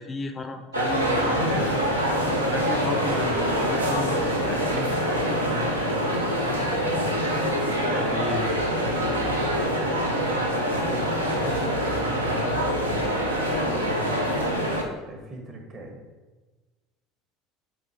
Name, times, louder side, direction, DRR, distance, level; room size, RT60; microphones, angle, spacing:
voice 1, 0.0-1.8 2.5-5.2 5.5-5.7 7.9-8.6 10.2-10.4, left 4 dB, 25° left, 8 dB, 0.4 m, -34 dB
sound 1, 0.7-14.8, equal, 85° right, 0.8 m, -25 dB
voice 2, 5.0-7.1 8.8-9.5 11.3-12.5 13.0-14.4 15.1-16.0, right 2 dB, 40° right, 2 dB, 1.5 m, -40 dB
8.0 x 2.9 x 4.6 m, 1.3 s
figure-of-eight pair, 70°, 0 cm